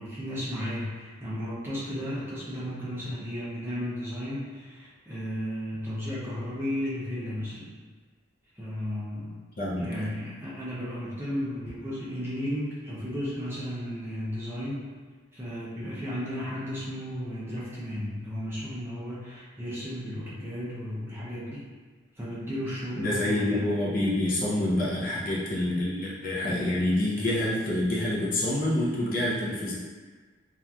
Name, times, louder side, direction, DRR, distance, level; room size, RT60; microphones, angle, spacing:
voice 1, 0.0-7.7 8.5-9.3 9.8-14.9 15.3-21.6 22.2-23.7, equal, 10° right, -9 dB, 0.5 m, -34 dB
voice 2, 9.6-10.1 23.0-29.7, left 1 dB, 45° left, -6 dB, 0.5 m, -27 dB
2.9 x 2.4 x 2.3 m, 1.4 s
head